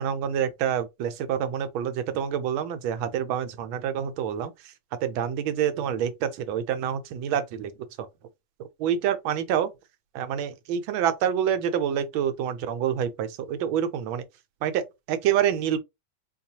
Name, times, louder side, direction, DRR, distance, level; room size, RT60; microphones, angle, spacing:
voice 1, 0.0-4.5 5.0-7.7 8.8-9.7 10.1-14.2 14.6-15.8, right 9 dB, 85° right, 1.4 m, -27 dB
4.4 x 2.4 x 2.8 m
omnidirectional pair, 2.2 m